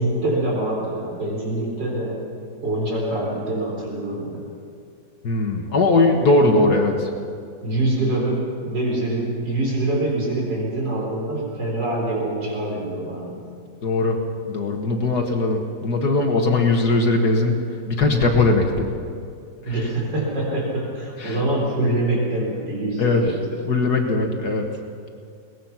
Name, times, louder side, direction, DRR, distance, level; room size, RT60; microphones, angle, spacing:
voice 1, 0.0-2.2 2.6-4.4 6.4-6.8 7.6-13.4 19.6-23.7, right 1 dB, 65° right, -2 dB, 4.7 m, -25 dB
voice 2, 5.2-7.1 13.8-14.2 14.5-17.6 17.9-18.9 19.7-19.8 21.2-21.4 23.0-23.3 23.7-24.7, left 2 dB, 60° left, 2 dB, 2.0 m, -19 dB
22.5 x 19.5 x 5.9 m, 2.3 s
omnidirectional pair, 2.0 m